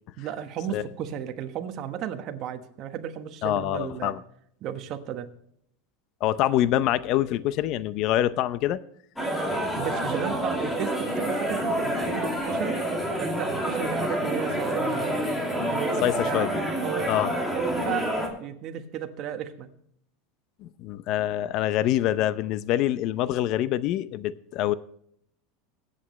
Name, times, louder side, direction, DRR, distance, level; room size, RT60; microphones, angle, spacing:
voice 1, 0.2-4.1 4.6-5.3 9.7-12.8 13.2-15.2 15.7-16.5 16.8-17.1 17.5-18.1 18.4-19.7, right 9 dB, 45° right, 1.3 m, -34 dB
voice 2, 3.4-4.2 6.2-8.8 16.0-16.5 17.1-17.3 20.6-24.7, left 13 dB, 50° left, 0.6 m, -25 dB
sound 1, 9.2-18.3, equal, 5° left, 2.4 m, -28 dB
22.0 x 8.3 x 3.2 m
supercardioid pair, 135°, 0 cm